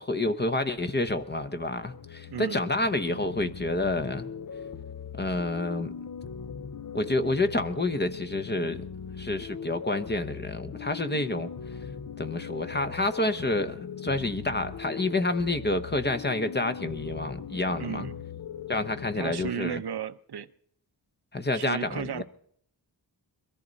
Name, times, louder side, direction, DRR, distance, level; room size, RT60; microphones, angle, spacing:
voice 1, 0.0-4.3 5.1-5.9 6.9-8.9 9.2-11.5 12.2-18.1 18.7-19.8 21.3-22.2, left 2 dB, 25° left, 1.0 m, -29 dB
sound 1, 1.2-19.5, left 7 dB, 45° left, 0.7 m, -40 dB
voice 2, 2.3-2.6 17.8-18.2 19.1-20.5 21.5-22.2, right 8 dB, 60° right, 0.7 m, -34 dB
22.5 x 14.0 x 4.1 m
wide cardioid pair, 135°, 43 cm